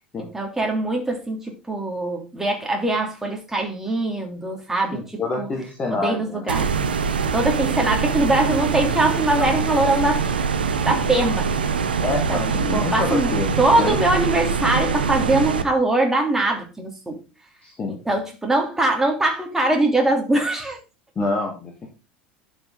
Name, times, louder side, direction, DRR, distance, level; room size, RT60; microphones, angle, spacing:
voice 1, 0.2-5.5 5.9-6.7 7.3-10.2 10.6-11.5 12.3-12.4 12.7-17.2 17.9-20.8, right 2 dB, 5° right, 2.9 m, -22 dB
voice 2, 4.9-6.5 9.4-9.5 12.0-14.0 17.6-18.0 21.2-21.9, left 3 dB, 25° left, 2.1 m, -27 dB
sound 1, 6.5-15.6, right 6 dB, 75° right, 1.0 m, -23 dB
11.5 x 5.5 x 3.9 m
figure-of-eight pair, 75°, 5 cm